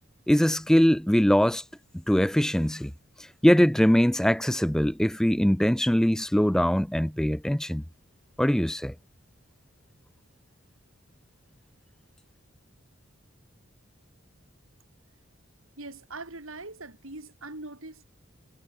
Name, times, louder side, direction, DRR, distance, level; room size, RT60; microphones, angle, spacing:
voice 1, 0.3-1.6 2.1-2.9 3.4-7.8 8.4-8.9, equal, 5° left, 0.3 m, -22 dB
voice 2, 15.8-18.1, right 2 dB, 90° right, 4.4 m, -41 dB
head